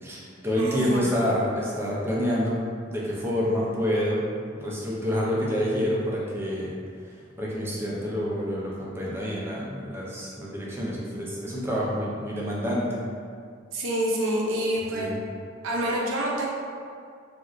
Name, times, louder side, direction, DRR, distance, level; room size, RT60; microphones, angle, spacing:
voice 1, 0.0-2.5 2.9-4.2 4.6-6.8 7.0-13.0 14.9-15.2, equal, 10° right, -6 dB, 0.4 m, -28 dB
voice 2, 0.6-1.1 13.7-15.1 15.6-16.5, right 1 dB, 85° right, -3 dB, 0.5 m, -27 dB
3.0 x 2.5 x 2.5 m, 2.2 s
head